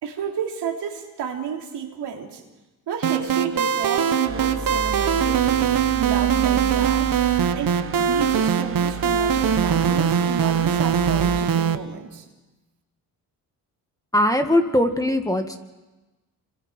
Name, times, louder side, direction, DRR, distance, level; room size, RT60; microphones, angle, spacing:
voice 1, 0.0-2.4 2.9-5.5 6.0-7.1 7.5-12.2, right 7 dB, 85° right, 1 dB, 3.3 m, -31 dB
sound 1, 3.0-11.8, right 8 dB, 55° right, 1.3 m, -21 dB
sound 2, 4.3-11.4, right 4 dB, 30° right, 1.4 m, -33 dB
voice 2, 14.1-15.6, left 1 dB, 10° left, 5 dB, 2.2 m, -20 dB
29.0 x 26.0 x 4.6 m, 1.1 s
cardioid pair, 75°, 39 cm